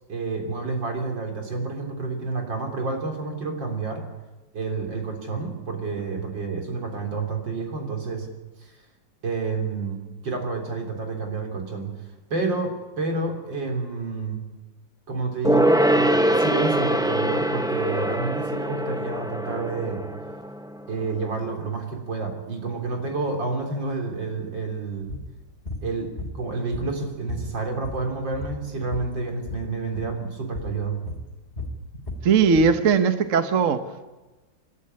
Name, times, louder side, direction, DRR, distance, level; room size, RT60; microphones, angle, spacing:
voice 1, 0.0-4.0 4.5-8.3 8.6-8.7 9.2-14.4 15.1-20.1 20.9-25.1 25.8-31.0, right 3 dB, 75° right, 3 dB, 4.2 m, -29 dB
Gong, 15.4-21.3 21.6-21.7, right 1 dB, 5° right, 0.4 m, -23 dB
sound 1, 25.1-25.3 25.6-25.9 26.2-27.0 27.3-29.1 29.4-29.6 29.9-30.1 30.5-30.8 31.1-32.8, left 2 dB, 35° left, 3.6 m, -34 dB
voice 2, 32.2-34.1, right 5 dB, 50° right, 9 dB, 1.2 m, -19 dB
27.0 x 12.0 x 9.6 m, 1.2 s
omnidirectional pair, 2.0 m